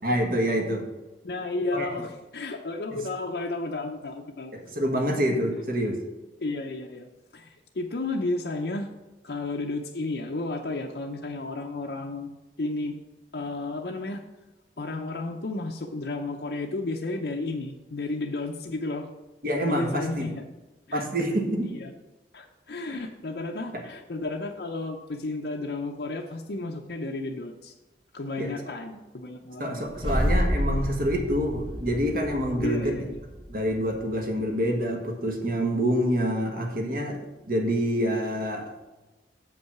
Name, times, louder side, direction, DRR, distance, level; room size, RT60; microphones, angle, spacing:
voice 1, 0.0-0.8 1.7-1.9 4.5-6.0 19.4-20.3 20.9-21.7 23.7-23.8 28.4-28.6 29.6-33.0 33.5-38.9, equal, 50° right, 2 dB, 1.5 m, -27 dB
voice 2, 1.2-4.5 6.4-8.9 9.2-12.3 12.6-13.0 13.3-14.2 14.8-19.1 19.6-20.4 20.9-21.1 21.7-21.9 22.3-27.7 28.1-29.9 32.6-33.2, left 2 dB, 60° left, 1 dB, 0.6 m, -32 dB
sound 1, 29.9-34.2, equal, 30° right, 1.9 m, -29 dB
7.4 x 5.5 x 5.8 m, 1.1 s
head